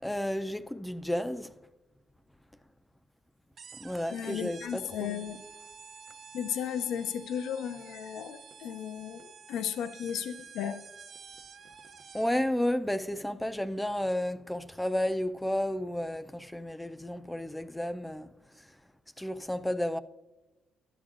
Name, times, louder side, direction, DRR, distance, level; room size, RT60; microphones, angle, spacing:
voice 1, 0.0-1.5 3.8-5.2 12.1-18.3 19.2-20.0, left 1 dB, 5° left, 0.4 m, -32 dB
sound 1, 3.6-12.5, right 6 dB, 55° right, 0.5 m, -50 dB
voice 2, 4.1-5.4 6.3-10.8, left 9 dB, 85° left, 0.5 m, -35 dB
12.0 x 8.7 x 2.5 m
cardioid pair, 90°, 0 cm